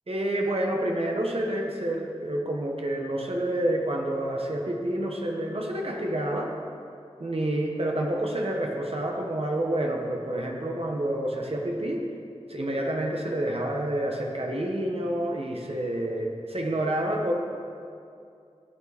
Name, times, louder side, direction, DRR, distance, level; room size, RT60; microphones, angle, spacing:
voice 1, 0.1-6.5 7.2-12.0 12.5-17.3, right 1 dB, 55° right, 0 dB, 1.4 m, -28 dB
14.0 x 8.4 x 4.3 m, 2.5 s
wide cardioid pair, 40°, 12 cm